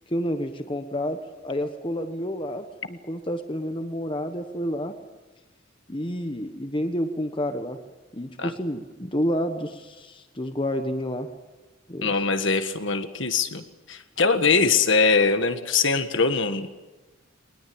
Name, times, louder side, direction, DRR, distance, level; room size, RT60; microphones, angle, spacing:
voice 1, 0.1-5.0 5.9-7.8 8.1-11.3 11.9-12.1 14.4-14.7, equal, 25° left, 7 dB, 1.2 m, -29 dB
voice 2, 12.0-16.7, left 4 dB, 60° left, 8 dB, 1.7 m, -22 dB
22.5 x 20.0 x 8.8 m, 1.1 s
head